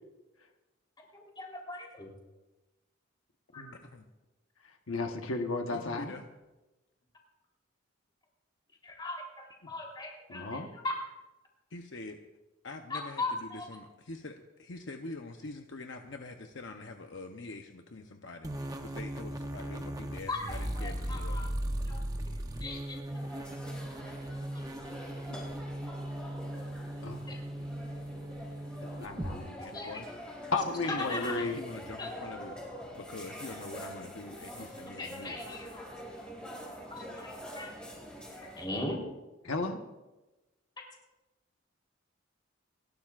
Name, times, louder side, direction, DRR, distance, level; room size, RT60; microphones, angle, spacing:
voice 1, 1.1-2.1 3.5-3.6 8.8-10.9 12.9-13.7 20.3-21.5 21.9-22.0 22.6-23.0 24.5-24.6 27.3-27.4 29.6-30.0 30.9-31.4 32.0-32.1 35.0-35.9 36.9-37.8 38.6-39.1, left 2 dB, 20° left, -1 dB, 3.6 m, -38 dB
voice 2, 4.9-6.1 10.3-10.7 27.0-27.2 29.0-29.6 30.5-31.6 39.4-39.8, left 3 dB, 85° left, 4 dB, 1.2 m, -33 dB
voice 3, 5.6-6.2 11.7-12.2 12.6-21.4 29.6-30.1 31.0-32.6 33.0-35.6, left 2 dB, 65° left, 4 dB, 0.8 m, -45 dB
sound 1, 18.4-29.3, right 1 dB, 20° right, 0.8 m, -38 dB
sound 2, 23.1-38.7, equal, 5° left, 3.7 m, -45 dB
29.5 x 12.0 x 2.5 m, 1.1 s
head